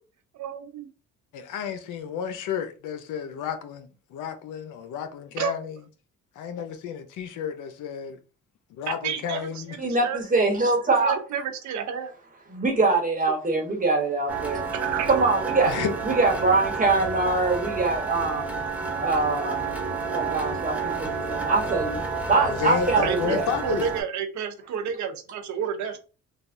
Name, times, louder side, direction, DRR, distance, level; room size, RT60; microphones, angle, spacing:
voice 1, 0.3-0.9 5.4-5.6 8.9-10.2 10.9-12.1 14.7-15.2 23.0-26.0, right 7 dB, 70° right, 0.6 m, -31 dB
voice 2, 1.3-5.7 6.4-8.2 8.8-9.8 13.3-13.4 15.7-15.9 22.5-23.9, left 7 dB, 85° left, 0.6 m, -31 dB
voice 3, 9.8-11.2 12.5-14.6 15.1-15.7 16.0-18.6 19.0-19.6 20.1-22.0 22.3-23.4, right 3 dB, 25° right, 1.1 m, -23 dB
sound 1, 14.3-24.0, right 4 dB, 5° right, 0.7 m, -30 dB
3.3 x 2.3 x 2.5 m
cardioid pair, 90°, 30 cm